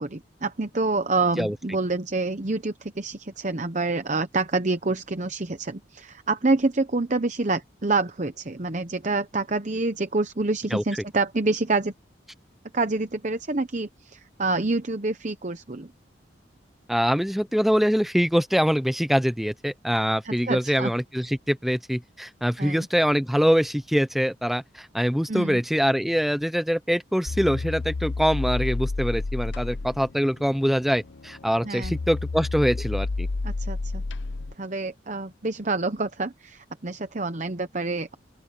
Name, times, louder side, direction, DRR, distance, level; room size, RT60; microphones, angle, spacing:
voice 1, 0.0-11.9 12.7-15.9 20.2-20.9 22.6-22.9 25.3-25.6 31.6-32.0 33.4-34.0 34.6-38.1, right 3 dB, 40° right, 0.9 m, -27 dB
voice 2, 16.9-33.3, equal, ahead, 0.6 m, -24 dB
sound 1, 27.3-34.5, left 3 dB, 75° left, 0.7 m, -30 dB
open air
head